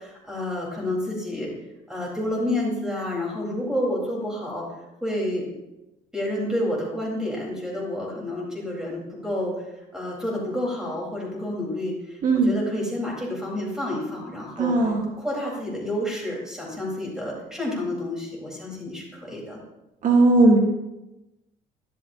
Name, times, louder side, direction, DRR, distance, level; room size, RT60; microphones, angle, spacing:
voice 1, 0.0-1.5 1.9-4.7 5.0-5.5 6.1-9.5 9.9-14.9 15.2-19.6, left 1 dB, 5° right, -3 dB, 4.1 m, -29 dB
voice 2, 12.2-12.5 14.6-15.1 20.0-20.6, right 2 dB, 50° right, 1 dB, 1.5 m, -17 dB
12.0 x 12.0 x 2.8 m, 0.96 s
cardioid pair, 110°, 17 cm